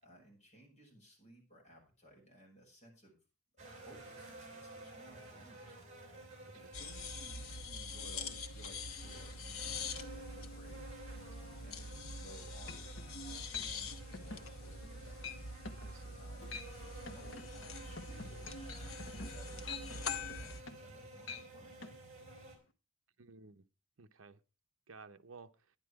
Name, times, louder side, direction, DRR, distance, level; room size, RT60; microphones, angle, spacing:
voice 1, 0.0-3.2 3.6-5.8 6.5-10.9 11.4-15.3 16.1-21.8, right 1 dB, 35° left, 6.1 m, -60 dB
sound 1, 3.6-22.6, right 2 dB, 35° right, 4.2 m, -53 dB
sound 2, 6.7-20.6, left 3 dB, 85° left, 1.1 m, -45 dB
sound 3, 12.2-12.3 12.7-13.1 13.5-13.7 14.1-14.5 14.8-15.0 15.2-15.4 15.6-15.9 16.3-16.7 17.1-20.9 21.2-21.5 21.8-21.9, left 5 dB, 60° left, 1.2 m, -46 dB
voice 2, 15.8-16.2 23.2-23.6 24.0-24.4 24.9-25.5, right 4 dB, 70° right, 0.8 m, -55 dB
11.0 x 10.5 x 4.7 m
head